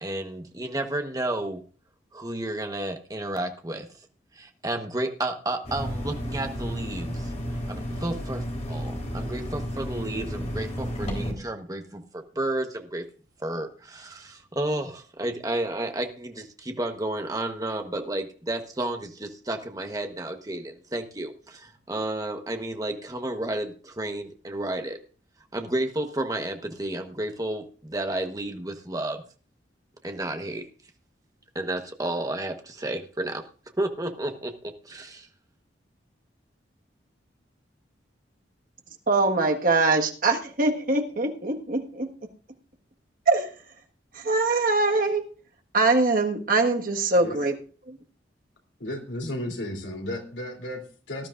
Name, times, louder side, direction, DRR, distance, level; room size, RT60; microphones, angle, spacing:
voice 1, 0.0-1.6 2.1-3.9 4.3-13.0 13.4-25.0 25.5-29.2 30.0-30.6 31.5-33.4 33.8-35.3, right 1 dB, 20° right, 5 dB, 1.1 m, -32 dB
sound 1, 5.6-11.3, equal, 40° left, 3.6 m, -32 dB
voice 2, 39.1-42.1 43.3-43.5 44.1-45.2 45.7-47.6 47.9-48.0, right 3 dB, 50° right, 4 dB, 1.6 m, -23 dB
voice 3, 48.8-51.3, left 1 dB, 80° left, 2 dB, 3.1 m, -34 dB
18.5 x 12.0 x 2.5 m, 0.39 s
head